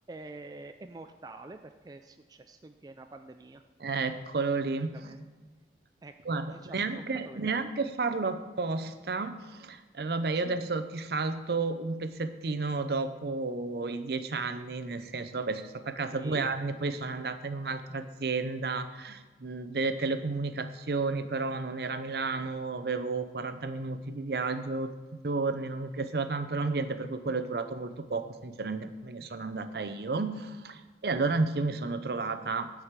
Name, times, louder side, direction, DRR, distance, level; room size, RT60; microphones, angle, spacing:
voice 1, 0.1-3.6 4.9-5.2 6.0-6.1 6.5-7.6 10.4-10.5 16.1-16.5 27.3-27.5, right 2 dB, 20° right, 7 dB, 0.3 m, -47 dB
voice 2, 3.8-5.2 6.2-24.9 25.2-32.7, right 3 dB, 60° right, 10 dB, 0.6 m, -32 dB
9.8 x 4.8 x 7.4 m, 1.3 s
head